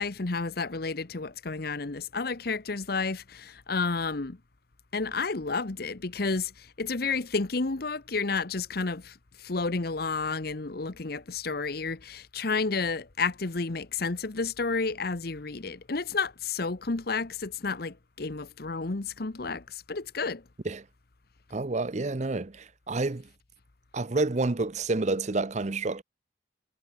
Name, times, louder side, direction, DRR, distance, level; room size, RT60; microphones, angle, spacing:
voice 1, 0.0-4.4 4.9-20.4, left 4 dB, 55° left, 1.0 m, -31 dB
voice 2, 21.5-23.3 23.9-26.0, right 3 dB, 40° right, 0.7 m, -29 dB
head